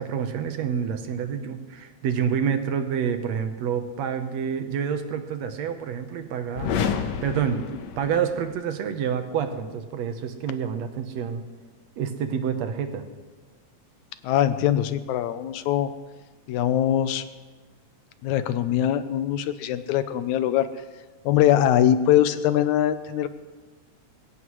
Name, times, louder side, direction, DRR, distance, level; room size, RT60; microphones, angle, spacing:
voice 1, 0.0-6.7 7.2-11.4 12.0-13.0, right 7 dB, 70° right, 7 dB, 2.1 m, -28 dB
sound 1, 6.5-8.5, left 7 dB, 70° left, 2.2 m, -29 dB
voice 2, 14.2-15.9 16.5-17.2 18.2-20.7 21.3-23.3, left 11 dB, 90° left, 12 dB, 2.1 m, -22 dB
21.5 x 17.0 x 3.2 m, 1.3 s
omnidirectional pair, 3.3 m